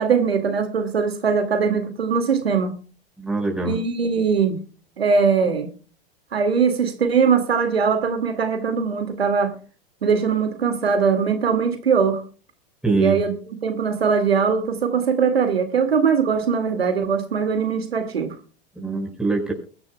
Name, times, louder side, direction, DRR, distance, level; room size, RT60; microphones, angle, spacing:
voice 1, 0.0-2.7 3.6-4.6 5.0-5.7 6.3-9.5 10.0-12.2 12.9-13.3 13.6-18.4, right 6 dB, 75° right, 7 dB, 2.2 m, -21 dB
voice 2, 3.2-3.8 12.8-13.2 18.8-19.5, right 3 dB, 5° right, 1 dB, 4.7 m, -23 dB
22.5 x 11.0 x 2.2 m, 0.38 s
figure-of-eight pair, 90°, 31 cm